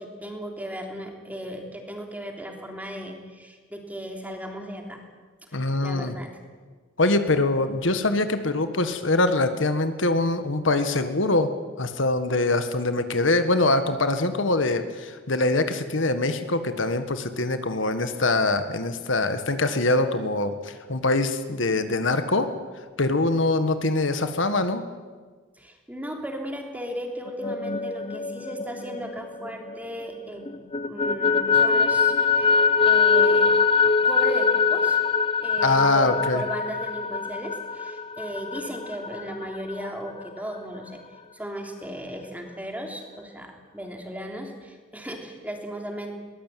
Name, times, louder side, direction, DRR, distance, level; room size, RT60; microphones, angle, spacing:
voice 1, 0.0-5.0 5.5-6.3 23.2-23.3 25.6-32.5 32.9-33.5 34.0-35.0 35.4-41.0 41.3-46.2, equal, 10° right, 3 dB, 3.2 m, -36 dB
voice 2, 5.5-6.1 7.0-11.5 11.8-22.5 23.0-24.8 35.6-36.4, left 2 dB, 65° left, 9 dB, 1.6 m, -23 dB
sound 1, 27.3-30.1 30.4-39.9, left 5 dB, 25° left, 0.6 m, -23 dB
22.0 x 19.5 x 9.2 m, 1.5 s
head